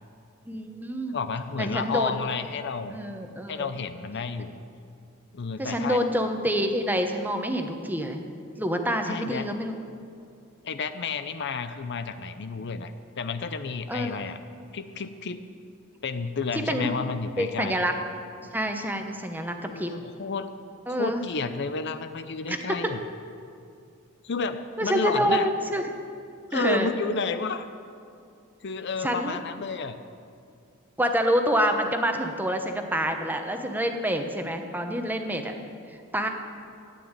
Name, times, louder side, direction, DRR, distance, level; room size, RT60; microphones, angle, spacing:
voice 1, 0.5-1.2 1.6-2.2 2.9-3.7 5.6-8.3 8.6-9.8 13.9-14.2 16.5-17.0 17.4-17.9 18.5-19.9 20.9-21.2 22.5-22.9 24.8-25.9 26.5-26.9 29.0-29.4 31.0-35.5 35.9-36.3, equal, 10° right, 5 dB, 1.0 m, -27 dB
voice 2, 1.1-3.0 3.5-4.5 5.3-6.0 9.0-9.5 10.6-14.4 14.7-15.4 16.0-17.8 19.6-20.5 21.0-23.0 24.2-25.5 26.5-27.7 28.6-30.0, left 4 dB, 55° left, 10 dB, 0.6 m, -31 dB
13.0 x 9.3 x 8.9 m, 2.4 s
head